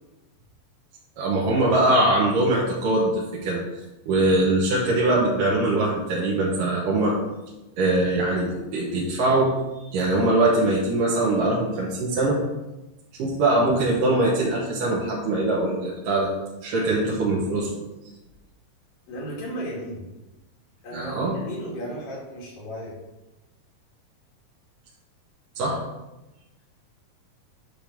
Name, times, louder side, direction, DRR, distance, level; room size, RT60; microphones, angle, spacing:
voice 1, 1.2-3.6 4.1-7.1 7.8-9.5 9.9-12.4 13.2-16.3 16.6-17.7 20.9-21.3 25.6-25.8, right 2 dB, 75° right, -5 dB, 2.8 m, -22 dB
voice 2, 19.1-20.0 20.8-22.9, equal, 90° left, -5 dB, 4.2 m, -34 dB
9.6 x 3.5 x 6.1 m, 1.0 s
omnidirectional pair, 3.9 m